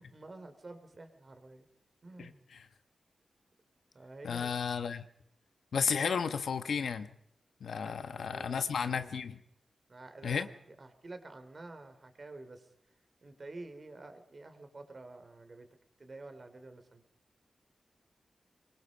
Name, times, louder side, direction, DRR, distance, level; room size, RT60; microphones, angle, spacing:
voice 1, 0.0-1.7 2.0-2.5 3.9-4.6 7.7-8.9 9.9-12.7 13.2-15.7 16.0-17.0, right 2 dB, 40° right, 3.3 m, -49 dB
voice 2, 2.2-2.7 4.2-5.0 5.7-7.1 7.6-9.4 10.2-10.5, left 6 dB, 90° left, 1.3 m, -33 dB
24.5 x 22.5 x 5.3 m
wide cardioid pair, 100°, 0 cm